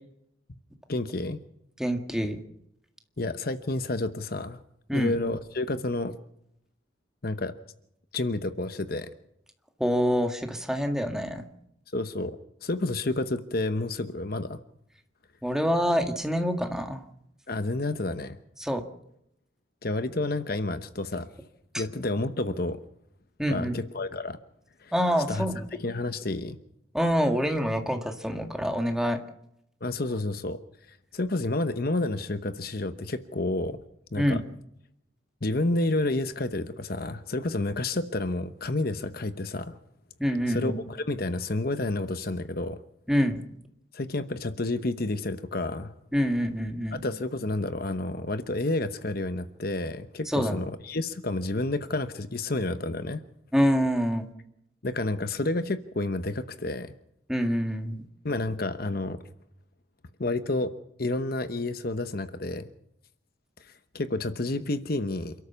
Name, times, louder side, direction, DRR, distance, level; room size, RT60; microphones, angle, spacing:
voice 1, 0.9-1.4 3.2-4.6 4.9-6.1 7.2-7.5 8.1-9.1 11.9-14.6 17.5-18.4 19.8-21.3 21.8-22.8 23.5-24.4 24.8-24.9 25.3-25.5 25.8-26.6 29.8-30.6 30.9-33.8 34.1-34.4 35.4-39.8 40.5-42.8 43.9-45.9 47.0-53.2 54.8-56.9 58.2-59.2 60.2-60.7 61.0-62.7 63.6-65.3, left 2 dB, 50° left, 11 dB, 1.0 m, -30 dB
voice 2, 1.8-2.4 4.9-5.2 9.8-11.4 15.4-17.0 18.6-18.8 21.7-21.8 23.4-23.7 24.9-25.6 26.9-29.2 34.2-34.4 40.2-40.8 43.1-43.4 46.1-47.0 50.3-50.6 53.5-54.3 57.3-58.0, equal, 5° right, 5 dB, 1.9 m, -26 dB
28.5 x 13.0 x 7.0 m, 0.77 s
head